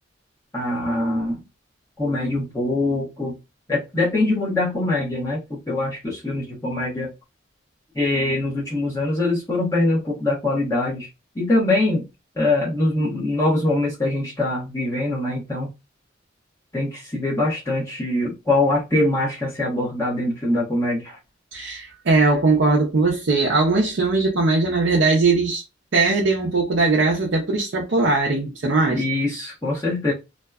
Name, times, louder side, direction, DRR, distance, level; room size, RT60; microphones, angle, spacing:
voice 1, 0.5-1.4 2.0-3.3 3.7-7.1 7.9-11.1 11.4-12.0 12.4-15.7 16.7-21.2 28.9-30.1, left 2 dB, 15° left, 0.9 m, -23 dB
voice 2, 21.5-25.6 25.9-29.1, right 3 dB, 65° right, 0.6 m, -20 dB
2.6 x 2.2 x 2.3 m
head